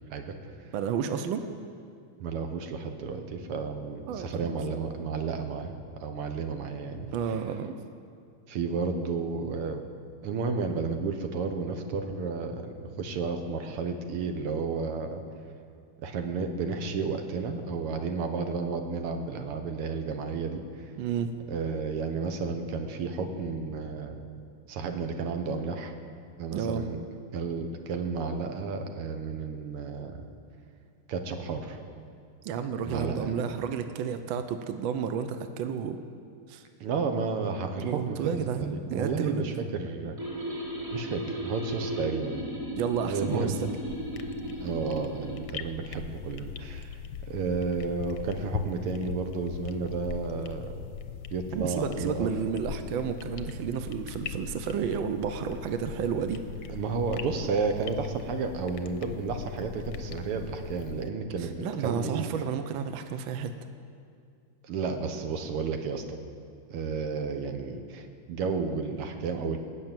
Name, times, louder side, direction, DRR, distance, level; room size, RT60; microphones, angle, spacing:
voice 1, 0.7-1.4 4.1-4.5 7.1-7.7 21.0-21.4 26.5-26.8 32.4-36.0 36.5-36.6 37.8-39.4 42.7-43.7 51.5-56.4 61.4-63.5, right 7 dB, 70° right, 8 dB, 1.4 m, -31 dB
voice 2, 2.2-5.7 6.0-7.1 8.5-9.9 10.2-15.2 16.0-20.6 21.5-24.2 24.7-25.9 26.4-27.0 27.3-30.2 31.1-31.8 32.8-33.5 36.8-40.1 40.9-42.4 43.0-43.6 44.6-46.9 47.3-50.9 51.3-52.3 56.7-62.3 64.7-66.2 66.7-69.6, right 4 dB, 90° right, 6 dB, 2.0 m, -32 dB
sound 1, 40.2-45.4, right 1 dB, 35° right, 3.7 m, -35 dB
sound 2, 43.9-61.1, left 7 dB, 65° left, 1.1 m, -40 dB
18.5 x 6.7 x 9.0 m, 2.3 s
omnidirectional pair, 2.4 m